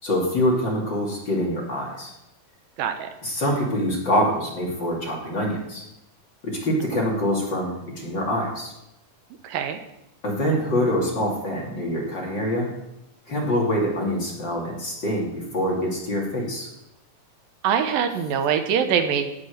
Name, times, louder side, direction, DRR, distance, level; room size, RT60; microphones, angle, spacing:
voice 1, 0.0-2.1 3.2-5.9 6.4-8.7 10.2-12.7 13.3-16.7, equal, 35° left, -3 dB, 2.9 m, -25 dB
voice 2, 2.8-3.1 6.9-7.0 9.4-9.8 17.6-19.4, right 8 dB, 80° right, 7 dB, 2.6 m, -23 dB
18.0 x 6.0 x 6.5 m, 0.86 s
omnidirectional pair, 4.1 m